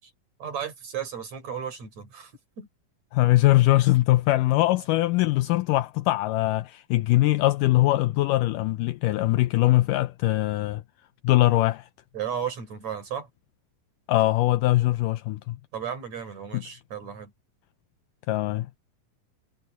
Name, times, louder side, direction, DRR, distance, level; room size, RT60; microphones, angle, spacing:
voice 1, 0.4-2.3 2.6-2.7 12.1-13.3 15.7-17.3, right 8 dB, 50° right, 5.5 m, -34 dB
voice 2, 3.1-10.8 11.2-11.9 14.1-15.6 16.5-16.6 18.3-18.7, left 17 dB, 80° left, 2.0 m, -22 dB
omnidirectional pair, 4.2 m